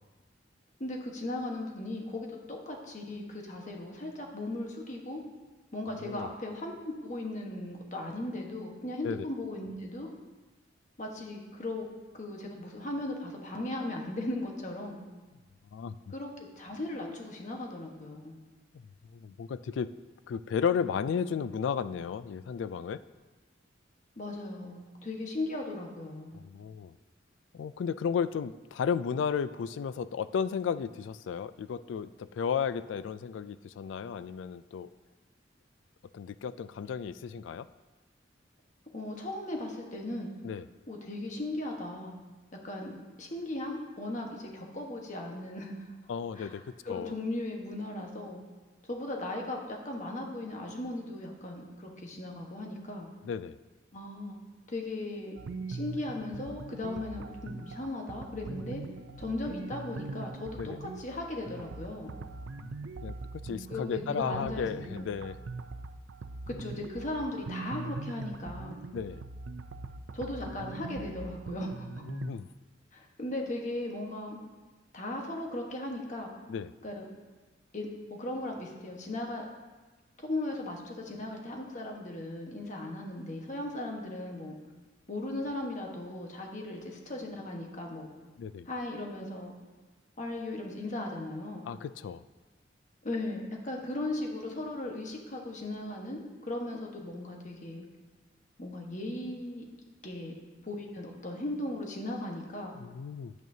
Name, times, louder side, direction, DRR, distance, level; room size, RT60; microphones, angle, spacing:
voice 1, 0.8-5.2 5.7-10.1 11.0-11.9 12.1-15.0 16.1-18.3 24.2-26.4 38.9-40.3 40.9-42.2 42.6-45.8 46.3-46.6 46.8-48.4 48.8-53.1 53.9-54.4 54.7-55.4 55.7-58.8 59.2-62.1 63.7-65.0 66.5-68.8 70.1-71.8 72.9-74.4 74.9-76.3 76.8-77.1 77.7-79.5 80.2-84.6 85.1-88.1 88.7-89.5 90.2-91.7 93.0-97.8 98.6-99.7 100.0-100.3 100.6-102.8, left 1 dB, 40° left, 1 dB, 1.3 m, -37 dB
voice 2, 6.0-6.3 9.0-9.3 15.7-16.0 19.1-19.9 20.3-23.0 26.3-27.0 27.5-34.9 36.1-37.7 40.4-40.7 46.1-47.1 53.2-53.6 60.6-60.8 62.6-62.7 63.0-65.4 68.9-69.2 72.0-72.5 76.5-76.7 88.4-88.7 91.6-92.2 102.8-103.3, left 7 dB, 75° left, 14 dB, 0.3 m, -34 dB
sound 1, 55.4-72.3, right 3 dB, 80° right, 0.5 m, -41 dB
10.5 x 9.1 x 2.8 m, 1.2 s
head